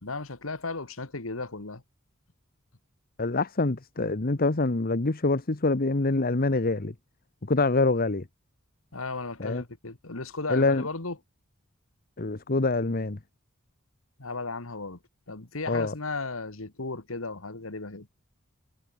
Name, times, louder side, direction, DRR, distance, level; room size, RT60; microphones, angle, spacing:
voice 1, 0.0-1.8 8.9-11.2 14.2-15.0 15.3-18.1, left 3 dB, 75° left, 2.1 m, -35 dB
voice 2, 3.2-6.9 7.5-8.2 9.4-9.6 10.5-10.9 12.2-13.2 15.7-15.9, left 3 dB, 45° left, 1.1 m, -25 dB
head